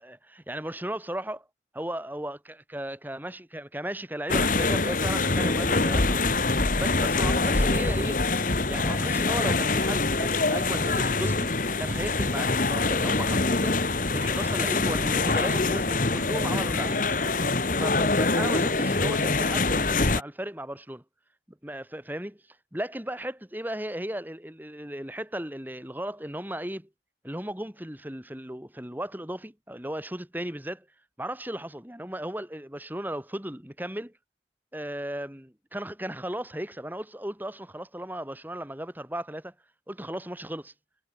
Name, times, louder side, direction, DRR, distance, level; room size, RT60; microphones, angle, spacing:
voice 1, 0.0-1.5 1.7-8.2 8.7-11.5 11.8-13.8 14.1-17.3 17.8-21.0 21.6-22.4 22.7-26.9 27.2-30.8 31.2-34.1 34.7-39.5 39.9-40.7, right 1 dB, 10° right, 2.9 m, -36 dB
sound 1, 4.3-20.2, left 3 dB, 45° left, 1.7 m, -25 dB
head